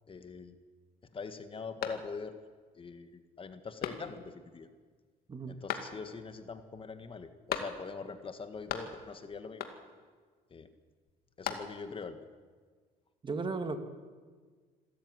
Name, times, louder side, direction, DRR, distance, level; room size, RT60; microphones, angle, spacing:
voice 1, 0.1-0.6 1.1-2.4 2.7-4.7 5.5-9.6 10.5-10.7 11.4-12.3, left 5 dB, 30° left, 9 dB, 1.8 m, -43 dB
sound 1, 1.8-2.5 2.9-3.0 3.8-4.4 5.7-6.3 7.5-8.1 8.4-9.2 9.6-10.1 11.1-12.0, left 8 dB, 65° left, 2.4 m, -39 dB
voice 2, 13.2-13.8, right 4 dB, 30° right, 8 dB, 2.0 m, -35 dB
26.5 x 13.5 x 9.6 m, 1.5 s
cardioid pair, 110°, 17 cm